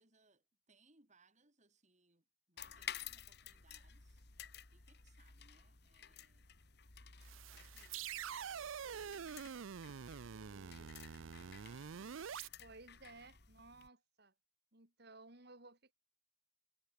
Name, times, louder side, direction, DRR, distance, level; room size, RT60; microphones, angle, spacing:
voice 1, 0.0-4.3 4.7-6.5 7.4-9.0, right 3 dB, 35° right, 4.2 m, -72 dB
sound 1, 2.6-13.9, left 8 dB, 55° left, 2.2 m, -53 dB
sound 2, 7.2-12.5, right 7 dB, 90° right, 0.5 m, -46 dB
voice 2, 10.3-11.0 12.6-14.3 14.7-15.9, right 2 dB, 55° right, 4.0 m, -59 dB
head